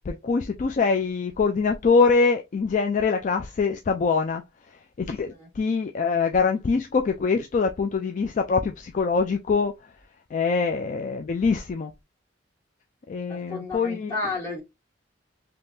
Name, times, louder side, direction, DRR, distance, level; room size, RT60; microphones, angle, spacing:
voice 1, 0.1-4.4 5.0-9.7 10.3-11.9 13.1-14.1, left 4 dB, 40° left, 0.3 m, -24 dB
voice 2, 13.3-14.6, left 3 dB, 15° left, 1.4 m, -32 dB
3.7 x 2.9 x 2.6 m
head